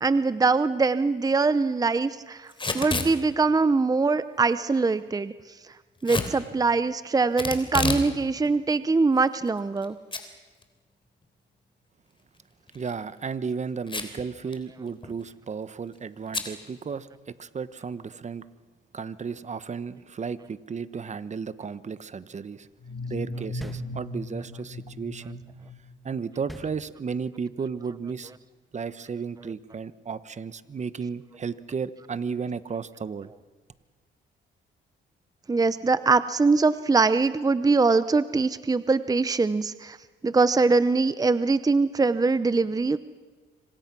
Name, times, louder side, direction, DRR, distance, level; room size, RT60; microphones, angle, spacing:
voice 1, 0.0-5.3 6.0-10.0 35.5-40.0 40.2-43.0, right 4 dB, 20° right, 14 dB, 0.8 m, -23 dB
Packing tape duct tape / Tearing, 2.5-3.1 6.0-6.3 7.4-8.1 8.4-8.5 9.2-9.8 10.1-10.2 10.6-10.7 12.7-12.9 13.9-14.2 14.5-14.6 14.9-15.2 16.3-16.5, left 3 dB, 25° left, 3.5 m, -29 dB
voice 2, 12.7-18.4 18.9-22.7 23.1-25.4 26.0-28.3 28.7-33.3, right 5 dB, 35° right, 14 dB, 1.1 m, -34 dB
sound 1, 22.8-26.5, left 1 dB, 60° left, 3.5 m, -37 dB
sound 2, 23.6-24.5 26.5-27.4, equal, ahead, 1.8 m, -44 dB
26.0 x 26.0 x 6.1 m, 1.4 s
cardioid pair, 90°, 20 cm